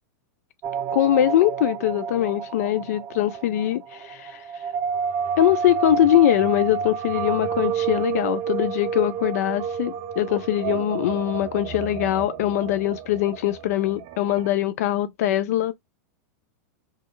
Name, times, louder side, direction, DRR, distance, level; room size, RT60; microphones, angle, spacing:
sound 1, 0.6-14.5, right 7 dB, 35° right, 0.5 m, -30 dB
voice 1, 0.9-4.6 5.4-15.7, left 12 dB, 65° left, 0.4 m, -22 dB
3.0 x 2.3 x 2.9 m
hypercardioid pair, 130°, 9 cm